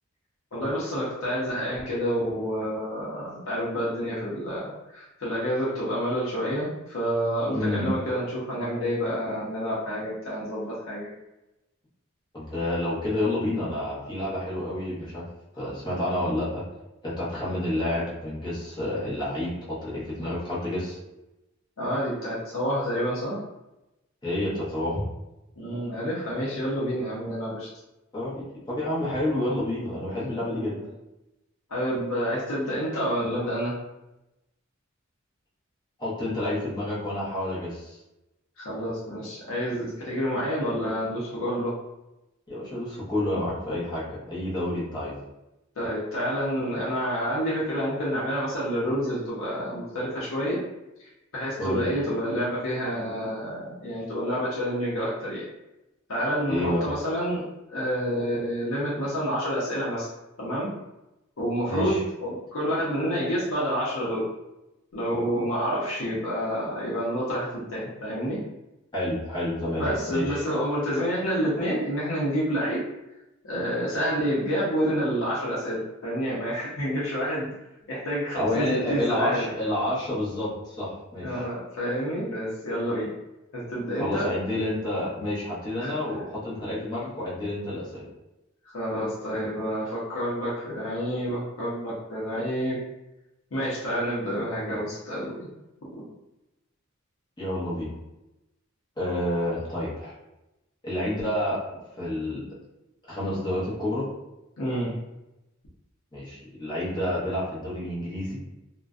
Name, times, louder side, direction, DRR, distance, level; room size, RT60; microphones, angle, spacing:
voice 1, 0.5-11.1 21.8-23.4 25.6-27.7 30.5-30.7 31.7-33.7 38.6-41.7 45.8-50.6 51.3-55.4 56.1-57.4 57.7-60.1 60.4-60.7 61.4-64.3 64.9-68.4 69.8-72.8 73.4-77.5 77.9-79.5 81.2-83.1 83.5-84.2 85.8-85.9 88.7-92.8 93.5-95.5 95.9-96.0 104.6-105.0, equal, 80° left, -7 dB, 0.6 m, -28 dB
voice 2, 7.5-7.9 12.3-15.3 15.5-16.6 17.0-21.0 24.2-25.0 28.1-30.8 36.0-38.0 42.5-45.1 51.6-51.9 56.5-56.8 61.7-62.0 68.9-70.4 78.3-81.5 84.0-88.0 97.4-97.9 99.0-100.1 100.8-101.6 102.0-102.5 103.1-104.1 106.1-108.4, left 1 dB, 20° left, -9 dB, 0.9 m, -29 dB
2.5 x 2.1 x 2.3 m, 0.94 s
head